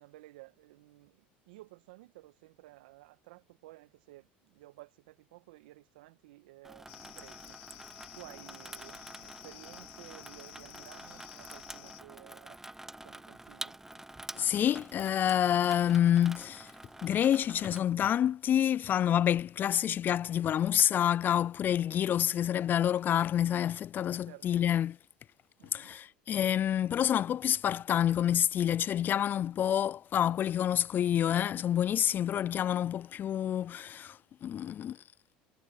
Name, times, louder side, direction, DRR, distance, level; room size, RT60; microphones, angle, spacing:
voice 1, 0.0-7.6 8.1-12.6 13.0-13.8 22.1-22.4 24.2-24.6 25.6-25.9, right 19 dB, 75° right, 2.0 m, -54 dB
Water tap faucet / Sink (filling or washing), 6.6-17.8, right 1 dB, 5° right, 0.8 m, -48 dB
sound 1, 6.9-12.0, left 25 dB, 70° left, 3.7 m, -51 dB
voice 2, 14.3-16.7 17.0-25.0 25.7-35.0, left 10 dB, 40° left, 0.3 m, -28 dB
hypercardioid pair, 80°, 5 cm